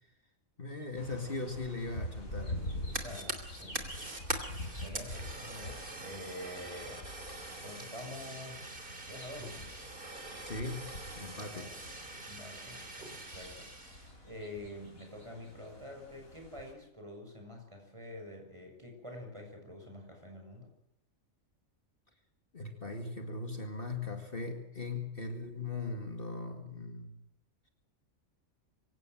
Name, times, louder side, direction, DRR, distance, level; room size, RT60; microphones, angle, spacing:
voice 1, 0.6-2.6 10.4-11.7 22.5-27.2, left 3 dB, 40° left, 5 dB, 2.4 m, -39 dB
sound 1, 1.0-16.7, left 1 dB, 90° left, 6.5 m, -46 dB
Fire, 2.6-14.1, right 2 dB, 40° right, 3.3 m, -43 dB
voice 2, 3.0-3.9 4.6-7.1 7.4-8.7 9.0-9.7 11.5-11.8 12.2-13.9 14.2-20.8, left 1 dB, 20° right, 3 dB, 6.6 m, -47 dB
24.5 x 17.0 x 7.7 m, 0.79 s
omnidirectional pair, 1.4 m